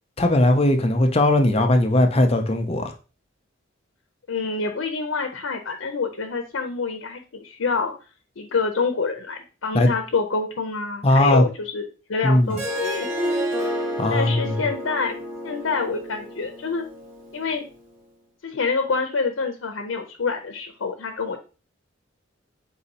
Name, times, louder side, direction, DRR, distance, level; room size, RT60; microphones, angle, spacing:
voice 1, 0.2-2.9 9.7-9.9 11.0-11.4 12.2-12.6 14.0-14.6, left 1 dB, 30° left, 0.5 m, -18 dB
voice 2, 4.3-7.9 8.4-13.1 14.1-16.8 17.3-17.6 18.4-21.4, left 4 dB, 85° left, 0.6 m, -27 dB
Harp, 12.5-17.7, equal, 80° right, 1.1 m, -30 dB
4.1 x 2.7 x 4.0 m
head